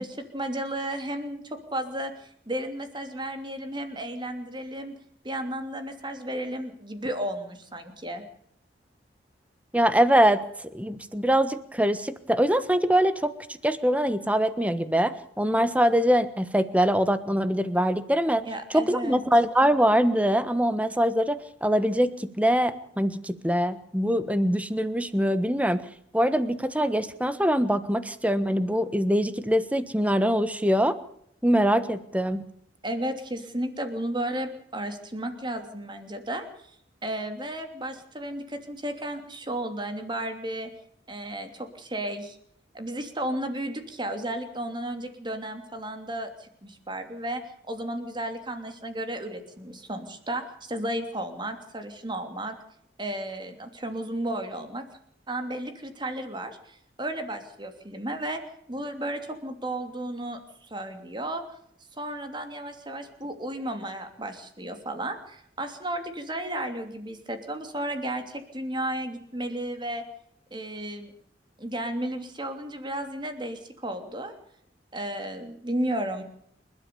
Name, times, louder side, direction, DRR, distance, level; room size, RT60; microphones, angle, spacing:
voice 1, 0.0-4.9 5.2-8.2 18.4-19.2 32.8-36.5 37.0-40.7 41.1-42.4 42.7-47.4 47.7-52.5 53.0-54.8 55.3-58.4 58.7-60.4 60.7-61.4 62.0-70.0 70.5-71.1 71.6-74.3 74.9-76.2, right 1 dB, 25° right, 6 dB, 3.0 m, -33 dB
voice 2, 9.7-13.3 13.6-18.4 18.7-25.8 26.1-31.0 31.4-32.4, equal, 10° right, 12 dB, 1.3 m, -23 dB
29.0 x 13.0 x 7.0 m, 0.70 s
head